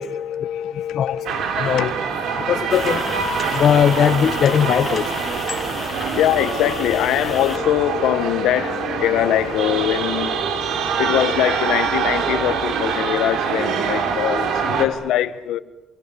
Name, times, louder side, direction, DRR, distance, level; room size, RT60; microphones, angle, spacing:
voice 1, 0.0-1.9 5.8-15.6, left 12 dB, 90° left, 1.3 m, -23 dB
sound 1, 1.3-14.9, right 6 dB, 80° right, 3.6 m, -24 dB
voice 2, 1.6-1.9 2.5-3.0 3.5-5.1, left 9 dB, 65° left, 1.2 m, -18 dB
sound 2, 2.7-7.6, left 5 dB, 35° left, 2.5 m, -32 dB
27.0 x 23.5 x 8.5 m
cardioid pair, 90°, 0 cm